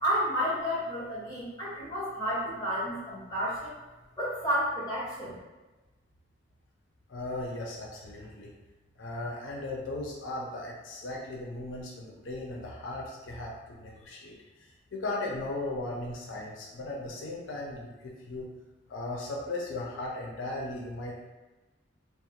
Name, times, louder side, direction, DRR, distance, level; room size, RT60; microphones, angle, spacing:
voice 1, 0.0-3.7 4.2-5.4, equal, 20° left, -9 dB, 0.9 m, -31 dB
voice 2, 7.1-8.5 9.0-18.5 18.9-21.3, left 2 dB, 85° left, -3 dB, 0.5 m, -37 dB
2.5 x 2.0 x 2.8 m, 1.1 s
head